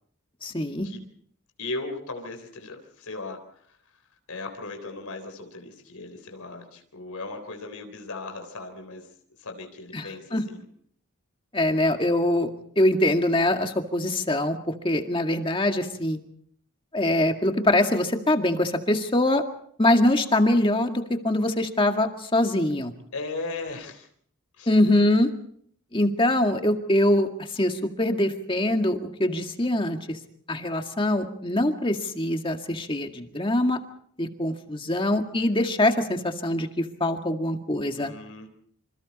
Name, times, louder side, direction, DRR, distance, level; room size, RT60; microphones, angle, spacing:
voice 1, 0.4-0.9 9.9-10.4 11.5-12.5 12.8-14.6 14.8-16.2 16.9-19.4 19.8-22.9 24.7-25.3 25.9-27.3 27.5-30.2 30.5-33.8 34.2-38.1, left 1 dB, 20° left, 5 dB, 2.0 m, -23 dB
voice 2, 1.6-3.8 4.3-9.1 9.4-10.6 11.8-12.1 23.1-24.1 24.6-24.7 38.0-38.5, left 3 dB, 85° left, 4 dB, 3.8 m, -37 dB
27.5 x 27.0 x 4.2 m, 0.64 s
head